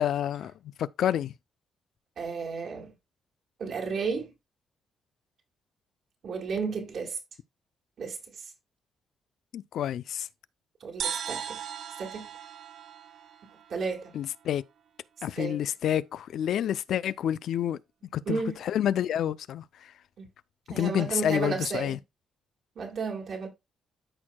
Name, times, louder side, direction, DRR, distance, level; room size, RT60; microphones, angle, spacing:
voice 1, 0.0-1.3 9.5-10.3 14.1-14.6 15.2-17.8 18.1-19.9 20.7-22.0, left 10 dB, 70° left, 0.4 m, -29 dB
voice 2, 2.2-2.9 3.6-4.3 6.2-7.2 8.0-8.4 10.8-11.6 12.0-12.3 13.7-14.1 15.4-15.6 18.2-18.6 20.2-20.3 20.7-22.0 22.7-23.5, right 5 dB, 55° right, 1.7 m, -33 dB
sound 1, 11.0-14.5, right 8 dB, 70° right, 1.0 m, -38 dB
13.0 x 4.5 x 2.2 m
cardioid pair, 125°, 0 cm